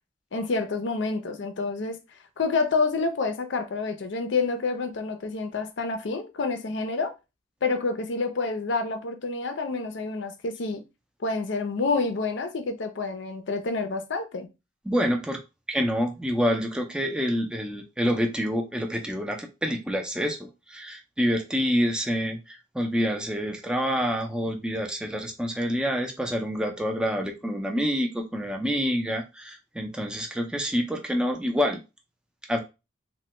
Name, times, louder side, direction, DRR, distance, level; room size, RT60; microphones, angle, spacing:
voice 1, 0.3-2.0 2.4-7.1 7.6-10.8 11.2-14.5, left 3 dB, 60° left, 0.5 m, -28 dB
voice 2, 14.9-15.4 15.7-31.8 32.5-32.6, equal, 5° right, 0.4 m, -27 dB
3.1 x 2.1 x 2.9 m
head